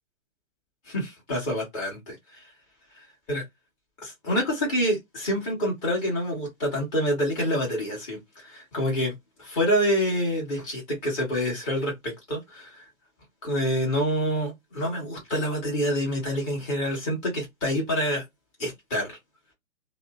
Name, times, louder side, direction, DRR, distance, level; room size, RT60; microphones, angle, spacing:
voice 1, 0.9-2.4 3.3-3.4 4.0-12.8 13.4-18.2 18.6-19.2, equal, 25° left, 1.4 m, -27 dB
2.8 x 2.0 x 2.4 m
hypercardioid pair, 150°, 41 cm